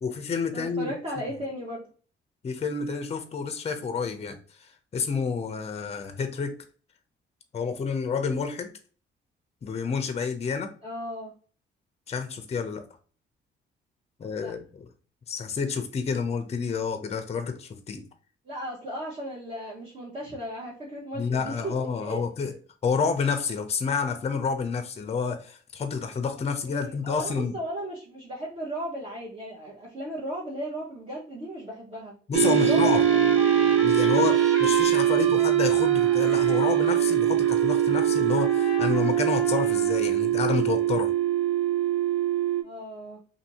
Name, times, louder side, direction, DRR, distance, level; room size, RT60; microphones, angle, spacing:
voice 1, 0.0-0.9 2.4-6.6 7.5-8.7 9.6-10.7 12.1-12.8 14.2-14.9 15.3-18.1 21.1-22.5 22.8-27.6 32.3-33.0 33.8-41.1, left 5 dB, 30° left, 0.5 m, -29 dB
voice 2, 0.5-1.9 10.8-11.3 14.4-14.5 18.4-21.7 22.0-22.2 26.6-32.1 32.5-33.2 42.6-43.2, equal, 30° right, 1.0 m, -36 dB
sound 1, 32.3-42.6, right 10 dB, 85° right, 0.6 m, -22 dB
Trumpet, 32.8-40.1, equal, ahead, 1.3 m, -36 dB
2.7 x 2.7 x 2.7 m
cardioid pair, 90°, 20 cm